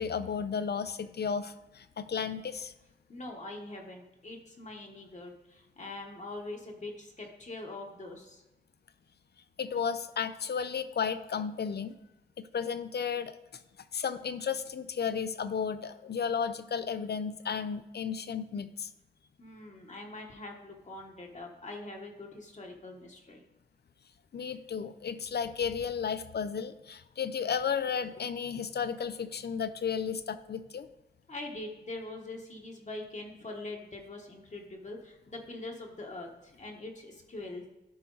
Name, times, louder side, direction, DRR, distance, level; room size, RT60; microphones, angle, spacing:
voice 1, 0.0-2.7 9.6-12.0 12.4-13.4 13.9-18.9 24.3-30.9, left 6 dB, 70° left, 12 dB, 0.5 m, -33 dB
voice 2, 3.1-8.4 19.4-23.4 31.3-37.7, left 2 dB, 45° left, 0 dB, 1.1 m, -43 dB
12.0 x 4.4 x 3.9 m, 1.0 s
wide cardioid pair, 120°, 18 cm